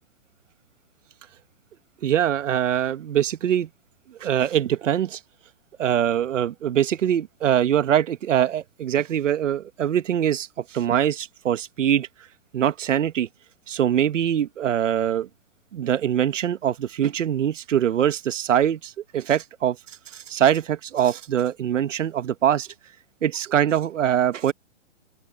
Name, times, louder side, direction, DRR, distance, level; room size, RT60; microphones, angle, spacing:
voice 1, 2.0-3.7 4.2-5.2 5.8-12.1 12.5-13.3 13.7-15.3 15.7-19.8 20.1-22.7 23.2-24.5, right 10 dB, 75° right, 1.5 m, -23 dB
open air
hypercardioid pair, 160°, 38 cm